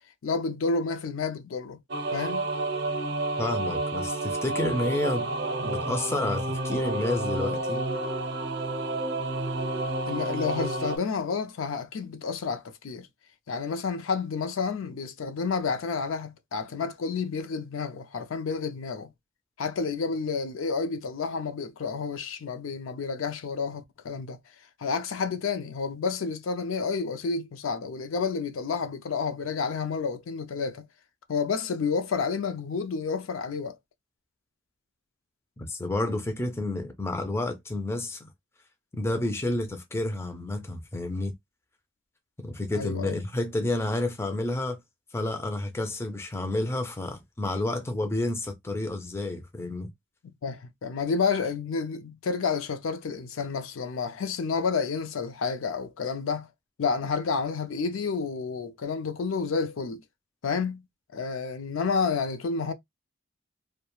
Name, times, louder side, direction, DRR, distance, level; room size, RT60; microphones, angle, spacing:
voice 1, 0.2-1.8 2.1-2.5 10.1-13.1 13.5-19.1 19.6-24.4 24.8-30.8 31.3-33.8 42.7-43.2 50.4-56.5 56.8-60.0 60.4-60.8 61.1-62.7, left 5 dB, 75° left, 0.4 m, -30 dB
sound 1, 1.9-11.0, right 2 dB, 55° right, 0.6 m, -30 dB
voice 2, 3.4-5.3 5.6-7.8 35.6-38.3 38.9-41.3 42.4-44.8 45.1-49.9, left 2 dB, 10° left, 0.3 m, -30 dB
2.3 x 2.1 x 2.9 m
head